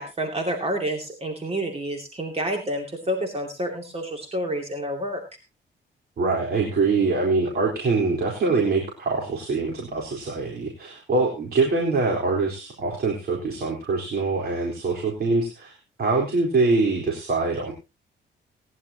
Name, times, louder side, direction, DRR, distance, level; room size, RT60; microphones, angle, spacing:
voice 1, 0.0-5.2, right 1 dB, 30° right, 3 dB, 2.6 m, -29 dB
voice 2, 6.2-15.7 16.0-17.7, right 3 dB, 55° right, 0 dB, 4.0 m, -24 dB
19.0 x 11.0 x 2.9 m, 0.27 s
cardioid pair, 90°, 20 cm